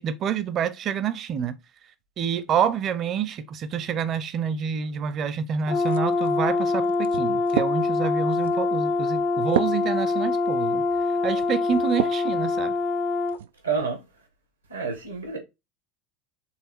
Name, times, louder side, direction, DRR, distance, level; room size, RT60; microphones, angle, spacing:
voice 1, 0.0-1.6 2.2-10.8 11.2-12.7, right 7 dB, 40° right, 0.9 m, -28 dB
Brass instrument, 5.7-13.4, left 3 dB, 40° left, 0.7 m, -24 dB
sound 1, 5.9-12.3 12.8-13.5, right 11 dB, 70° right, 0.4 m, -33 dB
voice 2, 13.6-14.1 14.7-15.4, right 5 dB, 90° right, 2.2 m, -28 dB
5.8 x 3.7 x 4.5 m
figure-of-eight pair, 75°, 0 cm